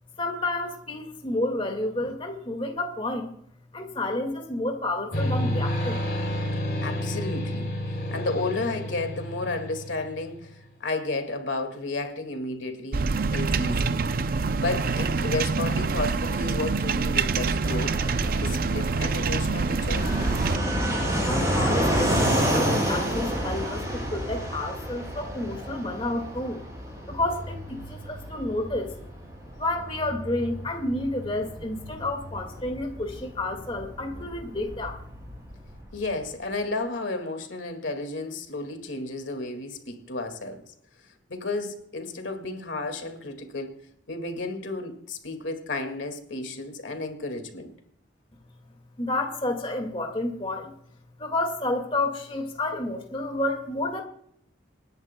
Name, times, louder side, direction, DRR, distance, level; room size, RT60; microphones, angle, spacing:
voice 1, 0.2-3.3 3.7-6.0 21.3-26.6 27.1-29.0 29.6-35.0 49.0-50.7 51.2-54.0, left 2 dB, 30° left, 1.9 m, -30 dB
sound 1, 5.1-10.6, left 1 dB, 55° left, 3.0 m, -30 dB
voice 2, 6.8-7.7 8.1-14.0 14.6-17.9 18.4-20.3 35.9-40.6 41.3-43.8 44.1-47.7, left 2 dB, 85° left, 2.0 m, -32 dB
sound 2, 12.9-20.6, right 4 dB, 50° right, 0.5 m, -26 dB
Fixed-wing aircraft airplane, 17.6-36.0, equal, 15° right, 6.6 m, -30 dB
28.0 x 10.5 x 2.2 m
head